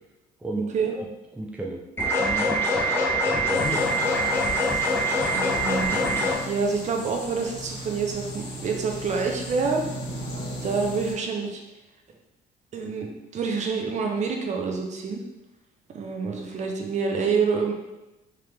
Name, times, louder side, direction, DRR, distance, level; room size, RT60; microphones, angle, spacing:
voice 1, 0.4-1.1 1.3-1.8 2.2-3.9, right 2 dB, 5° right, 0 dB, 0.4 m, -34 dB
sound 1, 2.0-6.4, equal, 15° left, 0.9 m, -24 dB
sound 2, 3.5-11.1, left 1 dB, 70° left, 1.1 m, -36 dB
voice 2, 5.3-9.9 10.6-11.6 12.7-15.2 15.9-17.7, right 5 dB, 45° right, 2 dB, 0.6 m, -27 dB
3.6 x 2.9 x 3.3 m, 1.0 s
cardioid pair, 110°, 17 cm